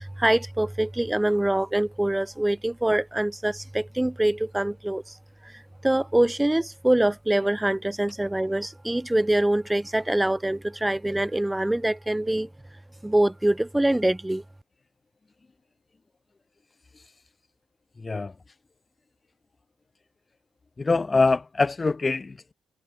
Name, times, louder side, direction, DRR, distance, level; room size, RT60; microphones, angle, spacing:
voice 1, 0.0-5.2 5.4-5.5 5.8-12.5 13.0-14.4, right 1 dB, 10° right, 3.8 m, -24 dB
voice 2, 20.8-22.5, left 3 dB, 30° left, 0.6 m, -24 dB
cardioid pair, 70°, 0 cm